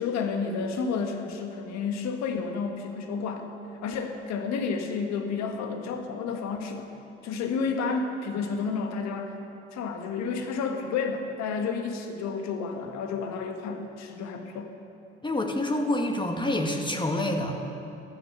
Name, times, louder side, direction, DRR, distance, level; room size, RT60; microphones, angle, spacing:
voice 1, 0.0-3.5 3.8-6.9 7.2-9.4 9.7-14.7, left 5 dB, 55° left, 5 dB, 1.7 m, -31 dB
voice 2, 15.2-17.5, left 1 dB, 15° left, 3 dB, 1.7 m, -27 dB
14.5 x 11.0 x 6.8 m, 2.7 s
figure-of-eight pair, 55°, 33 cm